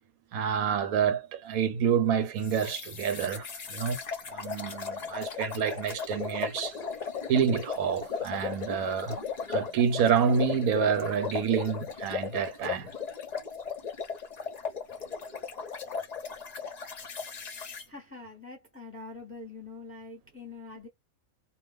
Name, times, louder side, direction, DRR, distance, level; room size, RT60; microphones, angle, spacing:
voice 1, 0.3-4.0 4.3-6.8 7.3-9.2 9.5-12.9, right 7 dB, 80° right, 1.1 m, -28 dB
sound 1, 2.4-17.8, left 6 dB, 50° left, 0.5 m, -37 dB
voice 2, 17.8-20.9, left 3 dB, 10° left, 0.8 m, -44 dB
2.3 x 2.3 x 3.3 m
omnidirectional pair, 1.5 m